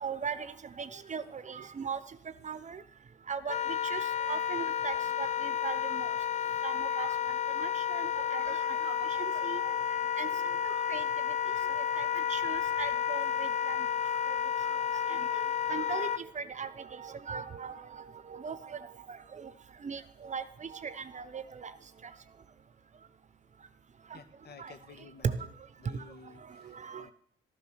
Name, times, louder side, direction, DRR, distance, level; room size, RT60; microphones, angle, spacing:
voice 1, 0.0-2.0 2.4-2.8 3.3-4.0 4.3-6.1 6.6-7.1 7.6-9.7 10.2-10.3 10.6-11.0 11.4-13.8 14.3-14.4 14.6-14.8 15.1-15.4 15.7-19.5 19.8-21.7 24.1-24.2 24.6-24.7 25.2-25.5 25.9-26.0 26.6-27.0, right 6 dB, 35° right, 14 dB, 0.9 m, -39 dB
Wind instrument woodwind instrument, 3.5-16.2, left 8 dB, 35° left, 0.6 m, -31 dB
voice 2, 24.1-25.5 25.8-27.1, left 4 dB, 55° left, 9 dB, 1.6 m, -53 dB
12.5 x 10.5 x 6.3 m, 0.66 s
cardioid pair, 90°, 20 cm